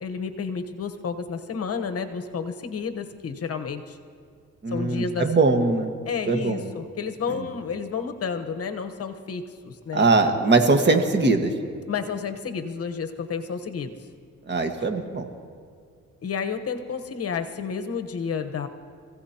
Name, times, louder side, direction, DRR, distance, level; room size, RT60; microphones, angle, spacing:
voice 1, 0.0-4.0 4.7-5.3 6.0-10.1 11.9-13.9 16.2-18.7, left 6 dB, 50° left, 7 dB, 1.1 m, -31 dB
voice 2, 4.6-5.9 6.3-6.6 9.9-11.5 14.5-15.3, right 3 dB, 35° right, 5 dB, 1.6 m, -21 dB
26.5 x 16.0 x 2.9 m, 2.2 s
cardioid pair, 90°, 30 cm